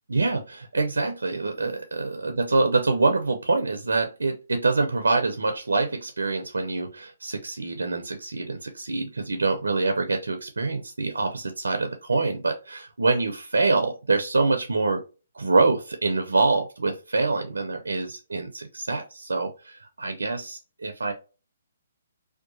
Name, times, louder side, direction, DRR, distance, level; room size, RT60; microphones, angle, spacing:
voice 1, 0.1-15.0 15.3-21.1, right 3 dB, 85° right, 5 dB, 0.5 m, -25 dB
2.7 x 2.2 x 2.6 m, 0.32 s
hypercardioid pair, 140°, 0 cm